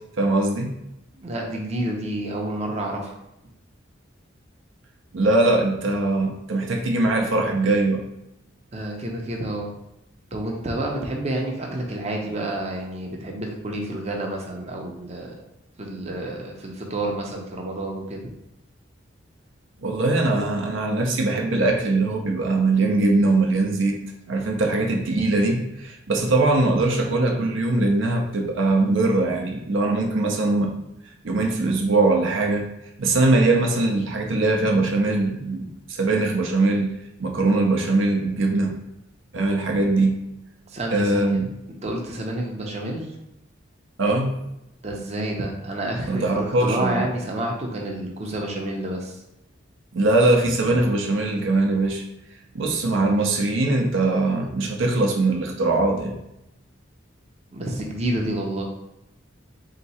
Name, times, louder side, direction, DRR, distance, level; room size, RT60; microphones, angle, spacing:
voice 1, 0.2-0.7 5.1-8.0 19.8-24.0 24.3-30.8 31.2-32.7 33.0-36.9 37.2-38.8 39.3-40.2 40.9-41.5 44.0-44.3 46.1-47.1 49.9-52.0 52.5-56.2, right 2 dB, 80° right, 2 dB, 0.6 m, -21 dB
voice 2, 1.2-3.2 8.7-9.7 10.3-15.3 15.8-18.2 40.7-41.4 41.8-43.1 44.8-49.2 57.5-58.6, right 1 dB, 35° right, 0 dB, 0.6 m, -29 dB
3.5 x 2.9 x 4.1 m, 0.87 s
head